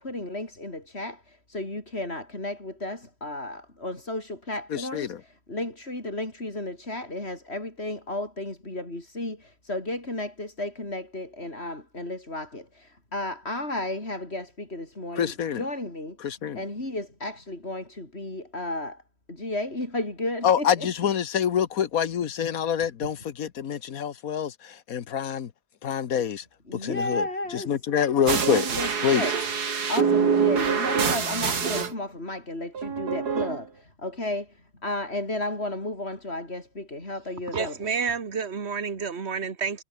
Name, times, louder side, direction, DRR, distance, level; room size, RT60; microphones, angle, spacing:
voice 1, 0.0-19.0 19.3-20.9 23.0-23.1 26.7-27.7 28.4-29.3 29.9-37.8, left 1 dB, 40° left, 6.2 m, -33 dB
voice 2, 4.7-5.2 15.2-15.7 16.2-16.6 20.4-25.5 25.8-26.4 26.7-27.2 27.5-28.6 29.0-29.3, left 8 dB, 65° left, 1.5 m, -26 dB
sound 1, 28.3-31.9 32.7-33.6, right 6 dB, 90° right, 2.6 m, -25 dB
voice 3, 37.5-39.8, right 5 dB, 45° right, 2.2 m, -29 dB
omnidirectional pair, 1.7 m